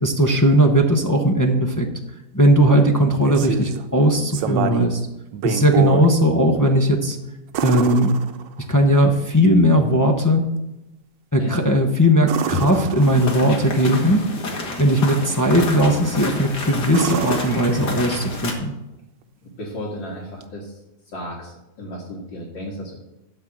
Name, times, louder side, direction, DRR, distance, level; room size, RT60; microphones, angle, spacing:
voice 1, 0.0-1.9 2.3-5.0 5.4-7.2 7.6-8.1 8.6-10.4 11.3-14.2 14.8-18.7, equal, 20° left, 1 dB, 0.5 m, -18 dB
sound 1, 3.0-3.8 4.3-5.0 5.3-6.1 7.5-8.8 12.2-13.5 16.0-16.4 16.9-18.3 20.4-20.5, right 8 dB, 85° right, 1.4 m, -27 dB
sound 2, 13.0-18.5, left 3 dB, 65° left, 2.2 m, -30 dB
voice 2, 19.6-20.7 21.1-23.0, equal, 90° left, -6 dB, 2.6 m, -33 dB
12.0 x 4.7 x 7.5 m, 0.94 s
omnidirectional pair, 1.9 m